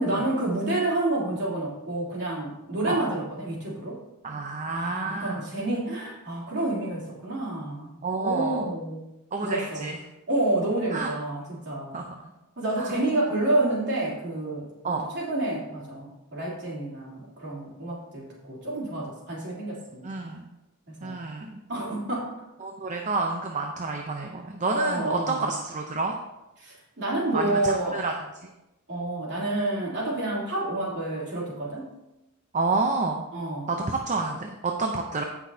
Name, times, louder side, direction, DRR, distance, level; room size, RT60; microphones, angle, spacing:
voice 1, 0.0-4.0 4.7-9.0 9.4-9.9 10.3-12.0 12.6-20.1 20.9-21.2 21.7-22.3 24.7-25.5 26.6-28.0 28.9-31.9 33.3-33.7, right 2 dB, 50° right, -5 dB, 3.2 m, -29 dB
voice 2, 4.2-5.4 8.0-8.6 9.3-10.0 10.9-11.1 11.9-12.3 12.8-12.9 14.8-15.1 20.0-20.5 21.0-21.6 22.6-26.2 27.3-28.1 32.5-33.2 33.7-35.2, right 3 dB, 35° right, 2 dB, 0.7 m, -29 dB
16.0 x 6.1 x 2.8 m, 0.95 s
head